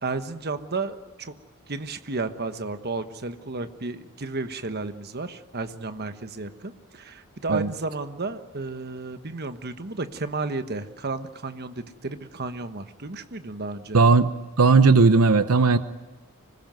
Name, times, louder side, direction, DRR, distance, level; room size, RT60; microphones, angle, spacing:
voice 1, 0.0-1.3 1.7-14.0, right 3 dB, 45° right, 9 dB, 1.3 m, -33 dB
voice 2, 13.9-14.3 14.6-15.8, right 4 dB, 80° right, 12 dB, 0.8 m, -17 dB
25.5 x 20.5 x 9.3 m, 1.3 s
head